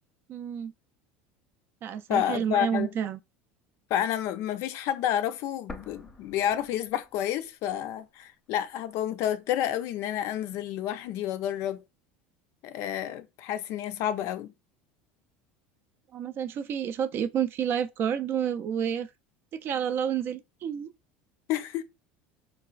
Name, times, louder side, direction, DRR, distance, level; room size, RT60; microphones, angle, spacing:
voice 1, 0.3-0.7 1.8-3.2 16.1-19.1 19.5-20.9, right 8 dB, 45° right, 0.3 m, -29 dB
voice 2, 2.1-2.9 3.9-11.8 12.6-14.5 21.5-21.8, left 11 dB, 60° left, 0.4 m, -30 dB
sound 1, 5.7-7.6 7.9-8.0 8.7-9.7, left 2 dB, 15° left, 0.6 m, -47 dB
3.9 x 2.4 x 2.3 m
supercardioid pair, 110°, 5 cm